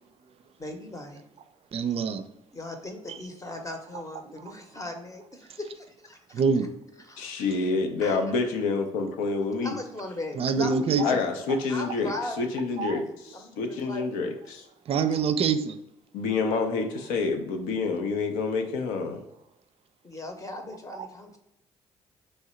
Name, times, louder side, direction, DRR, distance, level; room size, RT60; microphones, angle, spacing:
voice 1, 0.6-1.2 2.5-5.7 6.0-6.4 7.0-7.4 8.0-8.2 9.6-11.2 11.7-12.6 13.3-14.0 20.0-21.4, left 1 dB, 25° left, 0.8 m, -38 dB
voice 2, 1.7-2.2 4.5-4.6 6.3-6.7 10.4-11.0 11.5-11.6 12.8-13.0 14.9-15.8, right 5 dB, 45° right, 0.4 m, -25 dB
voice 3, 7.2-9.8 10.6-10.7 11.0-13.0 13.3-14.6 16.1-19.2, left 4 dB, 75° left, 0.6 m, -28 dB
3.2 x 2.7 x 4.3 m
hypercardioid pair, 50°, 14 cm